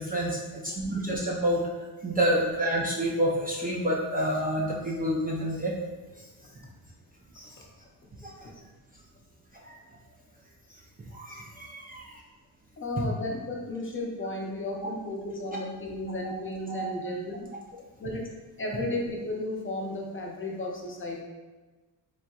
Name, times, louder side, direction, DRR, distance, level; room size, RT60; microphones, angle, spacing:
voice 1, 0.0-1.6 2.0-5.7 7.3-7.5 8.2-8.3 9.5-9.8 11.1-12.1 16.2-16.3 16.7-16.9, equal, 20° right, -4 dB, 0.5 m, -28 dB
voice 2, 12.8-17.3 18.0-18.2 18.6-21.2, left 1 dB, 30° left, -1 dB, 0.7 m, -34 dB
4.2 x 3.4 x 2.3 m, 1.2 s
cardioid pair, 110°, 41 cm